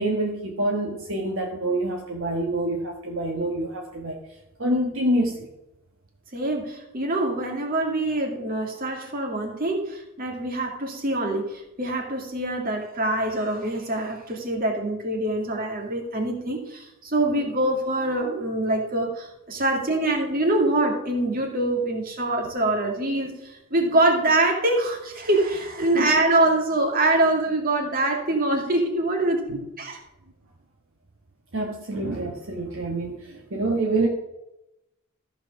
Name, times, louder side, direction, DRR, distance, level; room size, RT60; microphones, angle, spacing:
voice 1, 0.0-4.2 4.6-5.5 25.9-26.1 29.5-29.6 31.5-34.1, right 1 dB, 60° right, 0 dB, 1.4 m, -26 dB
voice 2, 6.3-30.0, right 2 dB, 40° right, 2 dB, 2.0 m, -24 dB
14.0 x 4.8 x 6.1 m, 0.92 s
head